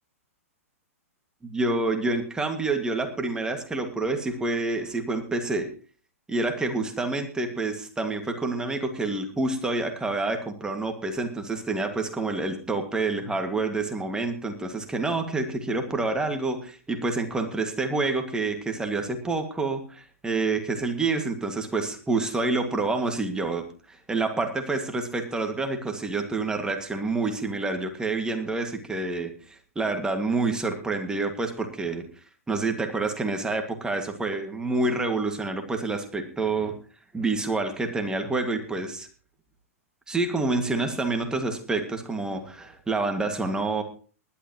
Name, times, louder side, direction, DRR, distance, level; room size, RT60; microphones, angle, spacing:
voice 1, 1.5-5.7 6.3-32.1 32.5-36.7 37.1-39.1 40.1-43.8, right 3 dB, 10° right, 5 dB, 2.0 m, -28 dB
19.5 x 11.5 x 3.0 m, 0.37 s
hypercardioid pair, 120°, 8 cm